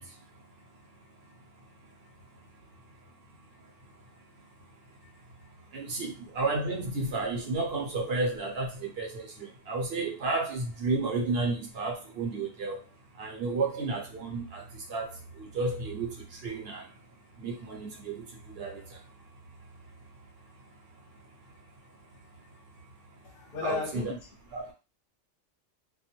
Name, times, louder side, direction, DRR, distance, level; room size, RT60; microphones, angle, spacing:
voice 1, 5.7-9.3 9.7-12.8 13.2-14.6 14.9-15.1 15.5-16.1 16.4-16.8 17.4-18.2 18.6-18.8 23.6-24.1 24.5-24.6, right 3 dB, 60° right, 0 dB, 0.9 m, -31 dB
voice 2, 23.2-24.2, left 6 dB, 55° left, 1 dB, 0.8 m, -34 dB
2.3 x 2.1 x 2.8 m, 0.30 s
omnidirectional pair, 1.2 m